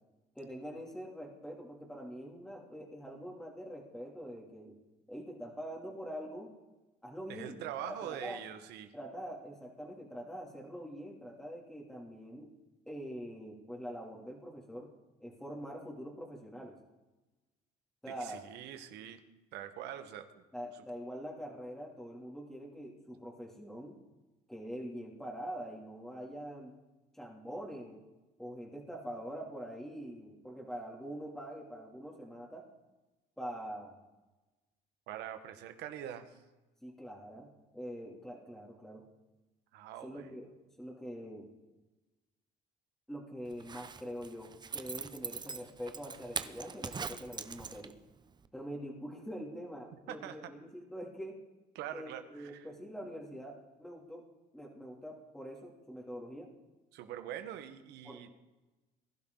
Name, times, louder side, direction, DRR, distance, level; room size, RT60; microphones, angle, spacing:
voice 1, 0.3-4.7 5.1-6.5 7.0-8.4 8.9-12.5 12.9-14.9 15.2-16.8 18.0-18.4 20.5-24.0 24.5-26.7 27.1-28.0 28.4-32.7 33.4-34.0 36.8-39.0 40.0-40.5 40.8-41.5 43.1-47.9 48.5-51.4 51.9-54.2 54.5-56.5 58.0-58.3, equal, ahead, -1 dB, 3.0 m, -44 dB
voice 2, 7.3-8.9 18.2-19.2 19.5-20.4 35.1-36.4 39.7-40.3 50.1-50.5 51.7-52.7 56.9-58.3, right 10 dB, 75° right, 8 dB, 1.6 m, -44 dB
Zipper (clothing), 43.5-48.1 48.4-48.5, right 5 dB, 25° right, 0.8 m, -42 dB
20.5 x 11.5 x 4.0 m, 1.1 s
cardioid pair, 100°, 17 cm